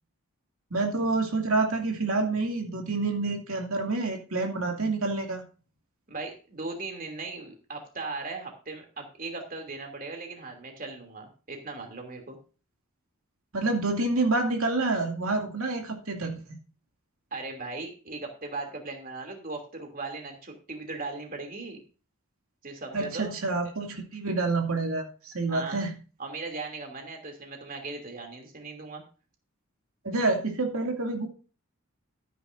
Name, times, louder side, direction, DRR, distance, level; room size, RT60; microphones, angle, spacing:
voice 1, 0.7-5.4 13.5-16.6 22.9-26.0 30.0-31.3, right 3 dB, 90° right, 2 dB, 2.5 m, -28 dB
voice 2, 6.1-12.4 17.3-21.8 22.6-23.4 25.5-25.8 26.2-29.0, right 3 dB, 40° right, 3 dB, 2.9 m, -38 dB
14.0 x 10.0 x 2.6 m, 0.35 s
head